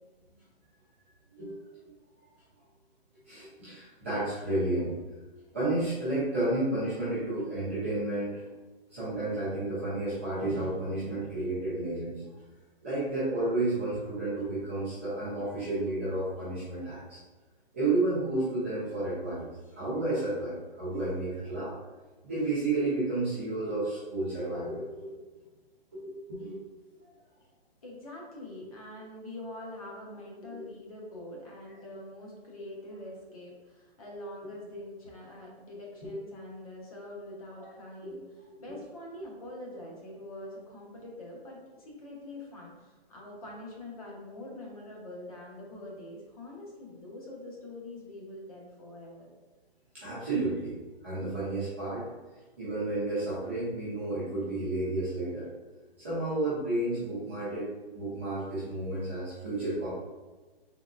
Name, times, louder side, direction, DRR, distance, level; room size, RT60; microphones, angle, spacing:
voice 1, 3.3-5.0 5.5-8.4 8.9-12.2 12.8-17.2 17.7-21.8 22.2-25.2 25.9-26.6 30.5-30.6 36.0-36.2 37.6-37.7 38.0-38.1 49.9-52.1 52.6-55.5 56.0-59.9, right 2 dB, 10° right, -13 dB, 0.5 m, -31 dB
voice 2, 27.8-49.3, left 1 dB, 35° left, -3 dB, 0.8 m, -44 dB
3.7 x 2.9 x 2.4 m, 1.2 s
hypercardioid pair, 170°, 31 cm